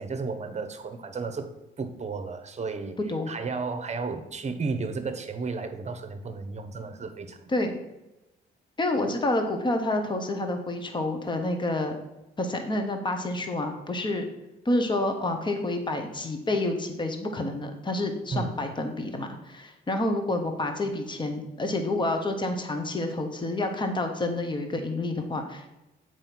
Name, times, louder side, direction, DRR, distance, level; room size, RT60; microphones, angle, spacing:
voice 1, 0.0-3.0 3.3-7.5 18.3-18.5, right 4 dB, 35° right, 9 dB, 1.0 m, -33 dB
voice 2, 8.8-12.0 12.4-14.2 14.6-25.7, left 2 dB, 25° left, 5 dB, 1.2 m, -28 dB
7.6 x 4.8 x 6.0 m, 0.95 s
cardioid pair, 90°, 20 cm